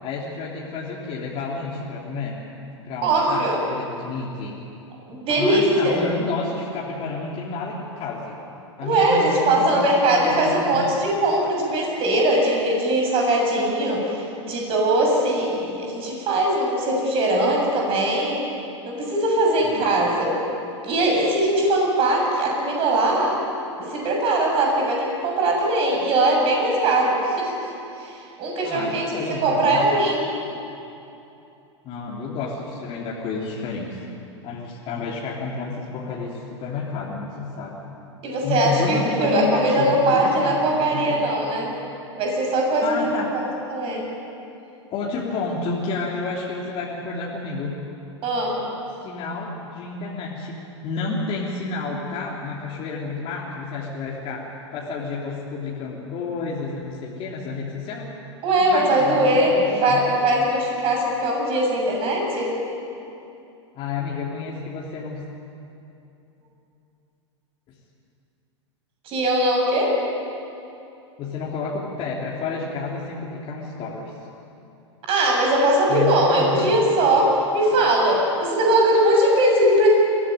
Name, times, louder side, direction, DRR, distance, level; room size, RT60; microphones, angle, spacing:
voice 1, 0.0-2.4 2.8-4.6 5.3-8.4 8.8-10.9 19.6-19.9 28.6-29.8 31.8-34.0 34.4-37.7 38.4-41.3 42.8-43.3 44.9-47.8 49.0-54.4 54.7-58.1 58.6-60.0 63.7-65.2 71.2-74.1 75.9-76.7, left 4 dB, 35° left, -4 dB, 3.1 m, -30 dB
voice 2, 3.0-3.6 5.1-6.0 8.8-18.4 18.9-20.4 20.8-23.3 23.7-27.5 28.0-29.1 29.4-30.3 38.2-41.7 42.2-43.4 43.7-44.0 48.2-48.6 58.4-62.5 69.1-69.9 75.1-79.9, right 1 dB, 35° right, 0 dB, 7.1 m, -20 dB
23.0 x 16.0 x 9.2 m, 2.8 s
figure-of-eight pair, 95°, 16 cm